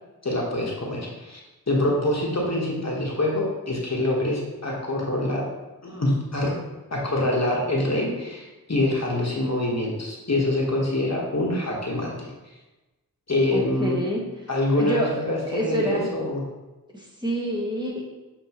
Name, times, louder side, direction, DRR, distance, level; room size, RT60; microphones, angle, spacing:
voice 1, 0.2-1.4 1.7-5.4 5.8-6.5 6.9-12.3 13.3-14.0 14.5-16.4, left 1 dB, 45° left, -3 dB, 1.4 m, -25 dB
voice 2, 13.5-16.1 16.9-18.1, equal, 10° right, -4 dB, 1.6 m, -28 dB
7.7 x 4.7 x 3.1 m, 1.1 s
wide cardioid pair, 60°, 36 cm